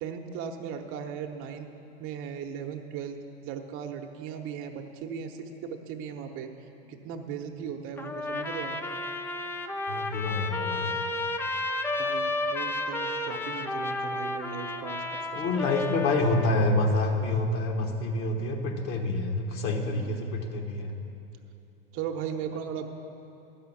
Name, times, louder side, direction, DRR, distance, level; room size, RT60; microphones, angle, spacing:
voice 1, 0.0-1.7 2.0-6.5 6.9-8.8 12.0-15.0 15.3-15.8 19.8-20.4 21.9-22.9, right 7 dB, 45° right, 4 dB, 0.9 m, -37 dB
Trumpet, 8.0-16.6, left 2 dB, 10° left, 0.4 m, -32 dB
voice 2, 9.9-10.9 15.4-21.0, left 2 dB, 45° left, 2 dB, 1.4 m, -27 dB
12.5 x 5.7 x 7.1 m, 2.7 s
hypercardioid pair, 90°, 29 cm